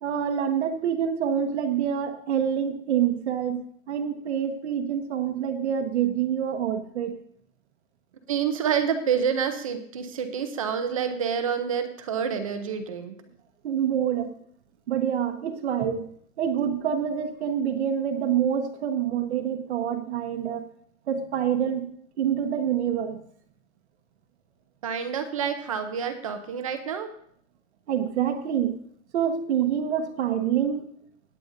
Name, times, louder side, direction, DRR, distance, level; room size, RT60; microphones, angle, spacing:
voice 1, 0.0-7.2 13.6-14.3 14.9-16.1 16.4-20.7 21.1-21.9 22.2-23.2 27.9-28.8 29.1-30.9, right 9 dB, 55° right, 5 dB, 1.0 m, -26 dB
voice 2, 8.3-13.2 24.8-27.1, right 7 dB, 25° right, 8 dB, 0.5 m, -28 dB
17.0 x 9.2 x 2.6 m, 0.63 s
supercardioid pair, 175°, 41 cm